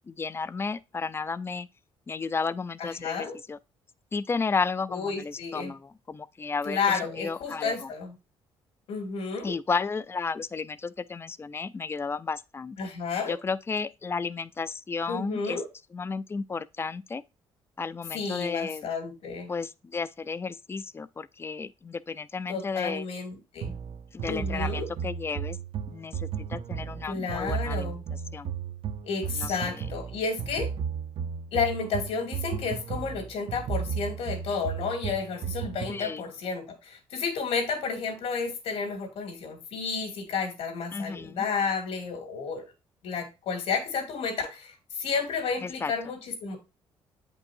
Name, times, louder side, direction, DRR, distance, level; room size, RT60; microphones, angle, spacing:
voice 1, 0.1-1.7 2.1-3.6 4.1-7.7 9.4-12.8 13.3-15.6 15.9-17.2 17.8-18.9 19.5-23.0 24.1-25.6 25.9-27.9 28.3-28.5 29.4-29.9 35.9-36.3 40.9-41.4 45.6-45.9, left 4 dB, 25° left, 0.5 m, -33 dB
voice 2, 2.8-3.4 4.9-5.7 6.6-8.2 8.9-9.5 12.8-13.3 15.1-15.7 18.1-19.5 22.5-23.8 24.3-24.9 27.0-28.0 29.0-30.7 31.5-42.6 43.0-46.6, left 5 dB, 80° left, 2.6 m, -31 dB
sound 1, 23.6-36.1, right 7 dB, 60° right, 0.8 m, -34 dB
8.3 x 5.4 x 2.7 m
cardioid pair, 105°, 11 cm